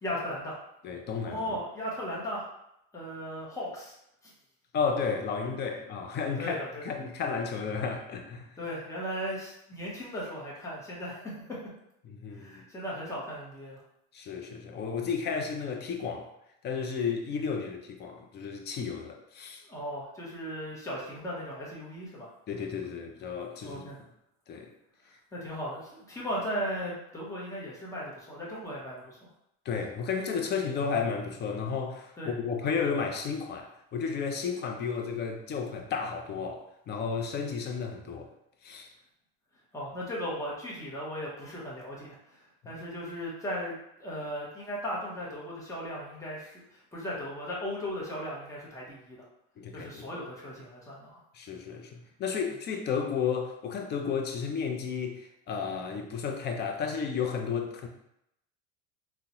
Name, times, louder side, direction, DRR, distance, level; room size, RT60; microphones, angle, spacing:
voice 1, 0.0-0.6 1.2-2.5 2.9-3.9 4.2-4.3 5.7-5.8 6.2-6.9 8.6-11.4 12.3-13.8 19.7-22.3 23.6-24.0 25.3-29.2 32.2-32.3 39.7-43.7 44.0-49.2 49.7-51.2, equal, 10° left, -5 dB, 0.8 m, -37 dB
voice 2, 0.8-1.6 4.7-8.6 12.0-12.6 14.1-16.3 16.6-19.6 22.5-23.9 24.5-24.7 29.6-38.3 38.6-38.9 49.6-50.1 51.3-57.9, left 6 dB, 35° left, 3 dB, 0.4 m, -33 dB
3.7 x 2.1 x 2.8 m, 0.80 s
cardioid pair, 150°, 31 cm